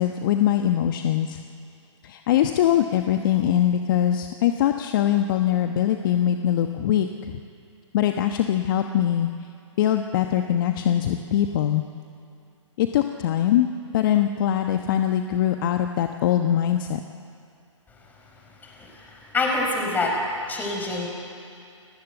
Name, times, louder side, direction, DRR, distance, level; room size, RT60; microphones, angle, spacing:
voice 1, 0.0-1.4 2.0-7.4 7.9-9.3 9.8-11.8 12.8-13.7 13.9-17.0, left 11 dB, 40° left, 6 dB, 1.1 m, -22 dB
voice 2, 18.6-20.1 20.5-21.1, left 2 dB, 10° left, 1 dB, 5.0 m, -26 dB
30.0 x 18.5 x 8.1 m, 2.5 s
hypercardioid pair, 140°, 17 cm